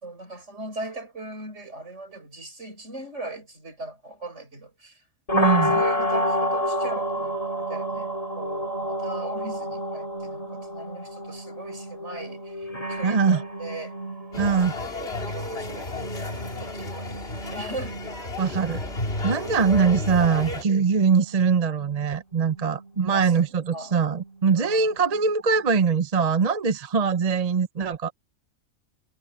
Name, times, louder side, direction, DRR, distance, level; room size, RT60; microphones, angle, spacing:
voice 1, 0.0-5.0 5.4-13.9 14.3-14.7 15.2-18.2 23.1-24.0 24.6-25.0, right 2 dB, 55° right, 6.1 m, -39 dB
sound 1, 5.3-25.1, equal, 25° left, 2.4 m, -31 dB
voice 2, 5.3-5.8 13.0-13.4 14.4-14.7 18.4-18.8 19.2-28.1, right 5 dB, 35° right, 0.7 m, -22 dB
sound 2, 14.3-20.6, left 2 dB, 45° left, 2.7 m, -32 dB
omnidirectional pair, 1.4 m